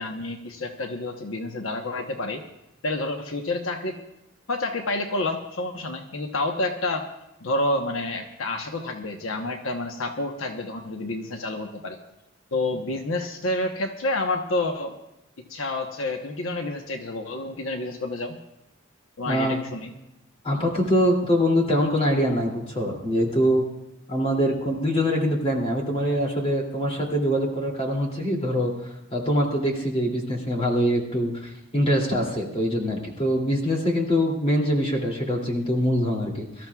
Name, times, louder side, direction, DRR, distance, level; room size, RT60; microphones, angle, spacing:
voice 1, 0.0-2.4 2.8-4.0 4.5-7.1 7.4-12.0 12.5-15.0 15.4-18.4 19.2-19.9, left 2 dB, 80° left, 4 dB, 1.0 m, -29 dB
voice 2, 19.2-19.6 20.4-23.6 24.1-28.7 29.1-36.7, equal, 30° left, -1 dB, 2.6 m, -24 dB
24.0 x 13.5 x 2.3 m, 0.89 s
head